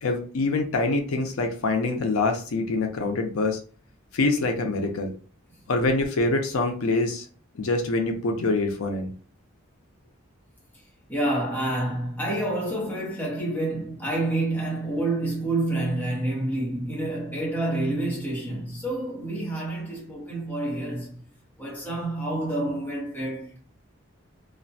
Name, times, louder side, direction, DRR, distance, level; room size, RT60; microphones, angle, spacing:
voice 1, 0.0-3.6 4.1-5.1 5.7-7.3 7.6-9.1, left 3 dB, 85° left, 0.5 m, -25 dB
voice 2, 11.1-21.1 21.6-23.6, right 1 dB, 10° left, 0.8 m, -28 dB
2.4 x 2.1 x 2.6 m
head